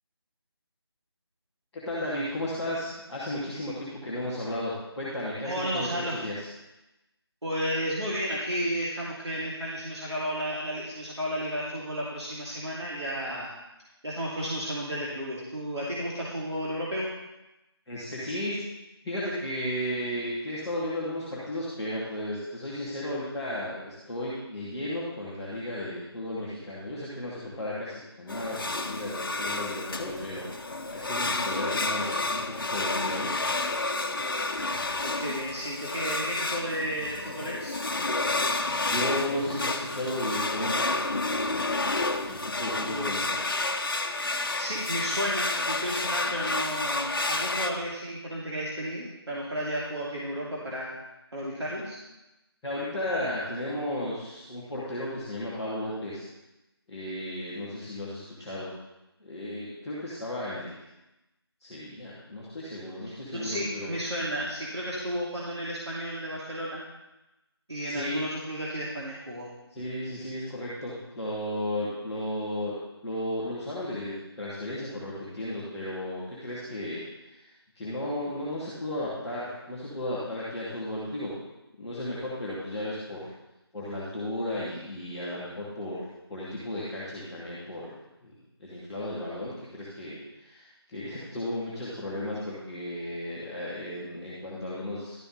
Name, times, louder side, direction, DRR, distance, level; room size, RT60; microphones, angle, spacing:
voice 1, 1.7-6.5 17.9-18.6 19.0-33.3 38.8-40.9 42.3-43.4 52.6-56.3 56.9-58.7 59.2-60.8 61.6-63.9 67.8-68.3 69.7-72.7 73.0-77.0 77.3-81.3 81.8-83.3 83.7-86.0 86.3-87.9 88.2-88.3 88.6-95.3, left 1 dB, ahead, -16 dB, 0.5 m, -34 dB
voice 2, 5.4-6.2 7.4-13.5 14.0-17.1 35.0-37.8 42.8-43.1 44.6-50.9 51.3-52.0 63.3-66.8 67.7-69.5, equal, 80° right, -6 dB, 2.7 m, -32 dB
sound 1, 28.3-47.7, left 2 dB, 55° left, 0.8 m, -30 dB
12.0 x 6.7 x 4.1 m, 0.96 s
figure-of-eight pair, 165°, 14 cm